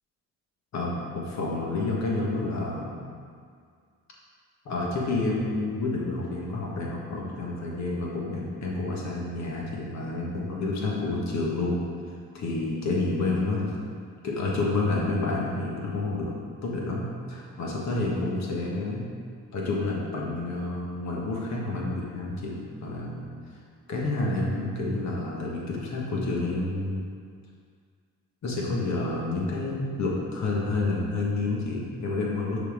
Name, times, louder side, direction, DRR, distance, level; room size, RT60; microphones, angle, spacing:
voice 1, 0.7-3.0 4.6-11.8 12.3-13.7 14.2-16.3 16.6-19.1 19.5-23.2 23.9-27.0 28.4-32.7, left 2 dB, 65° left, -3 dB, 1.7 m, -29 dB
6.6 x 4.3 x 5.1 m, 2.1 s
cardioid pair, 90°, 30 cm